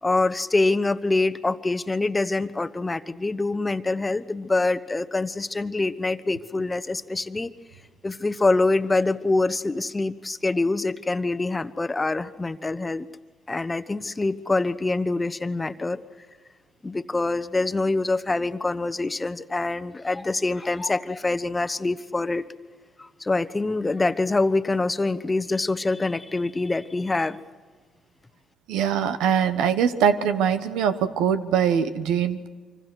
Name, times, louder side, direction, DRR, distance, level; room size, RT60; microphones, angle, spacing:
voice 1, 0.0-7.5 8.0-13.1 13.5-16.0 16.8-22.4 23.0-27.4, left 2 dB, 25° left, 12 dB, 1.1 m, -25 dB
voice 2, 28.7-32.5, right 8 dB, 90° right, 11 dB, 1.2 m, -22 dB
25.5 x 25.0 x 6.3 m, 1.5 s
supercardioid pair, 65°, 0 cm